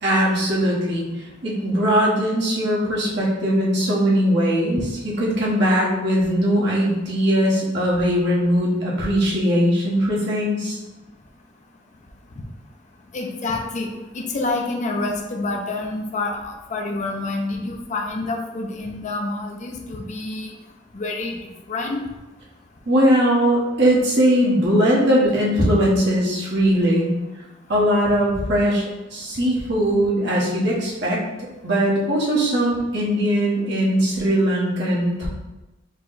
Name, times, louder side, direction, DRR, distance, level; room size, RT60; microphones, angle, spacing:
voice 1, 0.0-10.8 22.9-27.1 27.7-31.2 31.6-35.3, equal, 60° right, -6 dB, 1.3 m, -20 dB
voice 2, 13.1-20.5 20.9-21.4 21.7-22.0, left 2 dB, 40° left, 1 dB, 0.5 m, -27 dB
4.8 x 2.2 x 3.9 m, 1.0 s
head